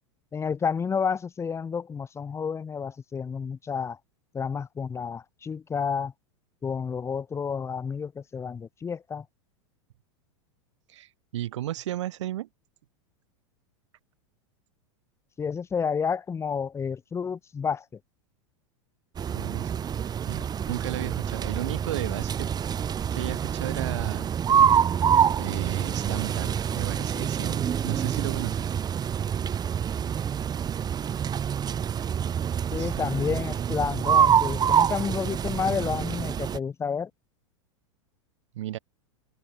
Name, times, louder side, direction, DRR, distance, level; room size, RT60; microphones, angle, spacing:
voice 1, 0.3-4.0 4.3-6.1 6.6-9.2 15.4-17.8 32.7-37.1, left 6 dB, 15° left, 1.0 m, -30 dB
voice 2, 10.9-12.5 19.3-19.7 20.3-22.5 23.1-24.3 24.6-24.7 25.4-28.7 32.8-33.2 38.5-38.8, right 13 dB, 75° right, 4.7 m, -34 dB
sound 1, 19.2-36.6, right 8 dB, 25° right, 2.6 m, -26 dB
hypercardioid pair, 110°, 15 cm